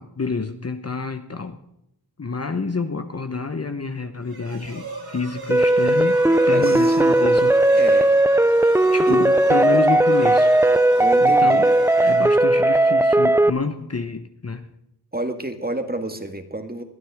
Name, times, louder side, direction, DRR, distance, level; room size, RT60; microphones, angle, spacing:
voice 1, 0.0-1.6 2.2-8.0 8.9-10.6 11.2-11.7 12.0-14.6, left 4 dB, 35° left, 8 dB, 1.0 m, -28 dB
sound 1, 4.2-13.0, right 3 dB, 60° right, 3.3 m, -37 dB
sound 2, 5.5-13.5, right 1 dB, 5° right, 0.4 m, -17 dB
voice 2, 6.5-7.0 7.7-8.1 9.1-9.2 11.0-11.8 15.1-16.8, right 2 dB, 20° right, 7 dB, 1.6 m, -29 dB
21.0 x 12.5 x 3.6 m, 0.81 s
wide cardioid pair, 60°, 42 cm